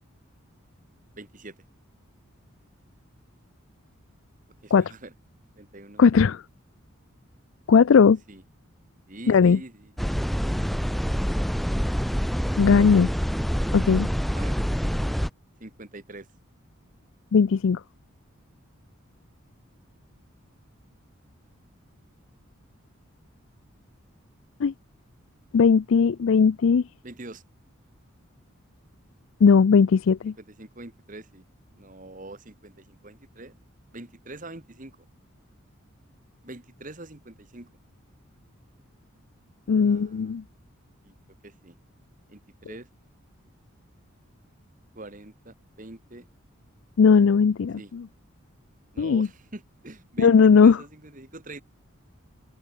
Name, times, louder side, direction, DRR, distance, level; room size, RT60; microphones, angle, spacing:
voice 1, 1.1-1.6 4.6-5.1 5.6-6.0 8.3-8.4 9.1-9.9 14.4-14.6 15.6-16.3 27.0-27.4 30.4-31.4 31.8-33.6 33.9-35.0 36.4-37.7 39.8-40.3 41.0-41.1 41.4-41.7 42.3-42.9 44.9-46.3 47.7-47.9 48.9-51.6, right 2 dB, 35° right, 1.8 m, -44 dB
voice 2, 6.0-6.4 7.7-8.2 9.3-9.6 12.6-13.1 13.7-14.1 17.3-17.8 24.6-24.7 25.5-26.8 29.4-30.3 39.7-40.4 47.0-48.0 49.0-49.3 50.2-50.8, left 5 dB, 65° left, 0.4 m, -18 dB
sound 1, 10.0-15.3, equal, ahead, 0.5 m, -26 dB
open air
head